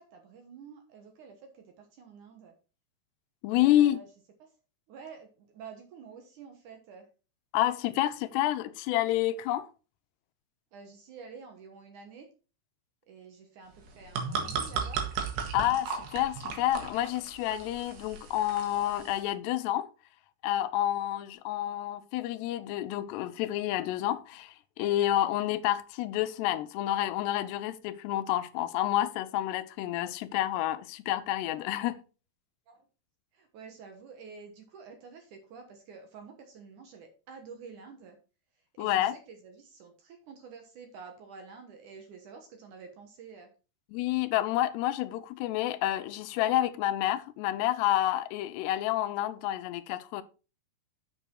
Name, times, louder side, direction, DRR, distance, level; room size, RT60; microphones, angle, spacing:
voice 1, 0.0-2.5 3.5-4.1 4.4-4.5 4.9-7.1 10.7-12.3 13.1-15.0 15.4-15.6 32.7-32.8 33.3-38.2 38.8-43.5, right 5 dB, 65° right, 2.2 m, -49 dB
voice 2, 3.4-4.0 7.5-9.7 15.5-19.9 20.4-32.0 38.8-39.2 43.9-50.2, left 13 dB, 90° left, 2.8 m, -29 dB
sound 1, 13.8-19.2, right 6 dB, 90° right, 3.9 m, -36 dB
7.5 x 6.7 x 4.5 m
omnidirectional pair, 4.7 m